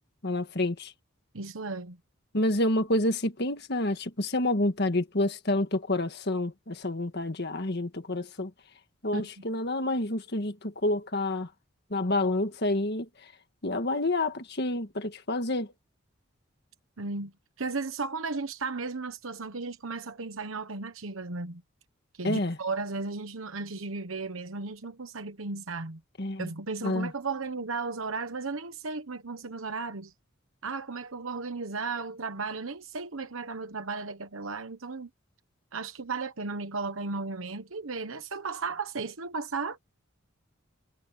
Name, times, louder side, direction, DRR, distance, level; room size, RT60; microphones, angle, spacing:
voice 1, 0.2-0.9 2.3-8.5 9.0-11.5 11.9-13.1 13.6-15.7 22.2-22.6 26.2-26.5 26.8-27.1, left 1 dB, 55° left, 1.7 m, -28 dB
voice 2, 1.3-2.0 9.1-9.4 17.0-17.3 17.6-21.6 22.1-26.0 26.4-30.1 30.6-35.1 35.7-39.8, right 4 dB, 90° right, 1.2 m, -35 dB
head